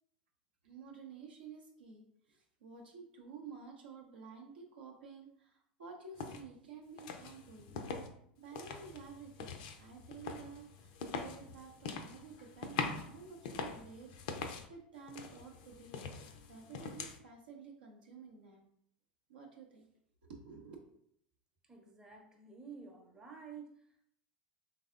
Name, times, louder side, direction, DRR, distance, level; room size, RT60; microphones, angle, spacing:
voice 1, 0.6-7.7 8.4-14.4 14.7-16.0 16.5-18.7 19.3-19.9 20.3-20.8, right 5 dB, 75° right, 0 dB, 0.6 m, -52 dB
sound 1, 6.2-6.4 7.0-8.1 8.4-14.7 15.1-17.2, left 5 dB, 60° left, 0.3 m, -43 dB
voice 2, 21.6-24.1, right 5 dB, 15° right, 1 dB, 0.6 m, -51 dB
3.4 x 2.0 x 2.4 m, 0.69 s
hypercardioid pair, 80°, 5 cm